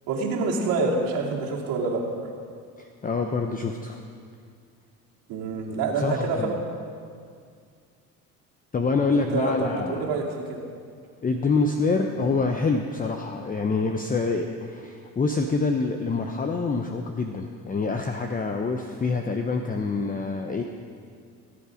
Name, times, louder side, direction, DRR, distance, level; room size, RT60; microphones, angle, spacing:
voice 1, 0.1-2.0 5.3-6.5 9.1-10.6 12.2-12.3, right 3 dB, 80° right, -2 dB, 2.6 m, -27 dB
voice 2, 2.8-4.0 5.9-6.5 8.7-10.2 11.2-20.6, left 4 dB, 25° left, 4 dB, 0.8 m, -26 dB
19.0 x 8.3 x 5.1 m, 2.2 s
supercardioid pair, 90°, 35 cm